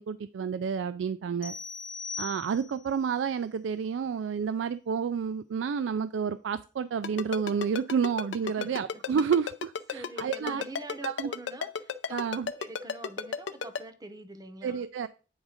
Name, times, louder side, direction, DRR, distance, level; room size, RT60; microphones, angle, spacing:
voice 1, 0.0-1.5 2.2-10.6 11.0-11.3 12.1-12.5 14.6-15.1, right 6 dB, 90° right, 0.3 m, -30 dB
sound 1, 1.4-2.9, left 5 dB, 45° left, 0.7 m, -39 dB
Ringtone, 7.0-13.8, left 6 dB, 85° left, 0.5 m, -33 dB
voice 2, 8.4-9.0 9.9-12.2 12.6-14.8, right 2 dB, 20° right, 0.7 m, -44 dB
8.7 x 3.6 x 4.9 m
head